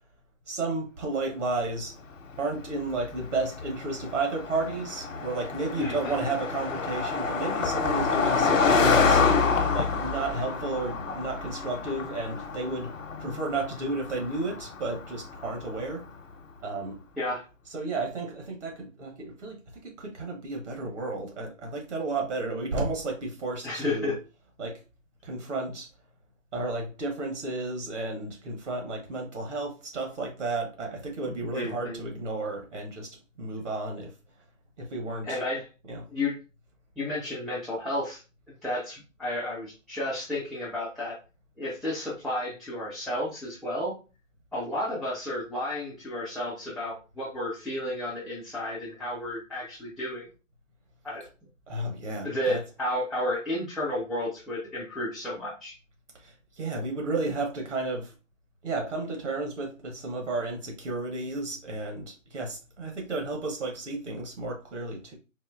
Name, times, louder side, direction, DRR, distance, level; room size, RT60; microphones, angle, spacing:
voice 1, 0.5-1.9 2.4-9.2 9.7-12.9 13.2-16.0 16.6-17.0 17.6-19.6 19.8-24.2 24.6-24.8 25.2-25.9 26.5-33.1 33.4-34.1 34.8-35.4 35.8-36.0 51.7-52.6 56.2-58.1 58.6-65.1, right 2 dB, 65° right, 1 dB, 1.1 m, -32 dB
Car passing by, 2.3-16.0, left 5 dB, 70° left, 0.8 m, -28 dB
voice 2, 5.8-6.2 17.2-17.4 23.6-24.1 31.5-32.0 35.2-35.7 36.1-36.4 37.0-38.2 38.6-41.2 41.6-43.9 44.5-50.3 51.0-51.2 52.2-55.7, left 1 dB, ahead, -7 dB, 0.3 m, -32 dB
4.2 x 2.6 x 2.4 m, 0.32 s
hypercardioid pair, 160°, 39 cm